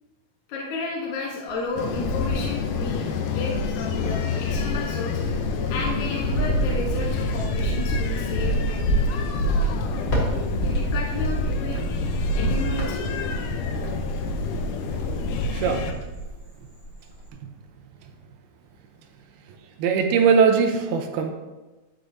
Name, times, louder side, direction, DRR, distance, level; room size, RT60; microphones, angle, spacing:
voice 1, 0.5-5.2 5.7-9.3 10.6-11.8 12.4-13.1, left 3 dB, 65° left, -2 dB, 2.1 m, -32 dB
Cricket, 1.5-3.0 3.5-16.4 16.7-17.3, right 2 dB, 50° left, 1.5 m, -27 dB
sound 1, 1.8-15.9, left 6 dB, 80° left, 1.9 m, -29 dB
voice 2, 15.5-15.9 19.5-21.3, right 6 dB, 80° right, 5 dB, 2.6 m, -21 dB
10.0 x 8.2 x 2.7 m, 1.1 s
omnidirectional pair, 4.5 m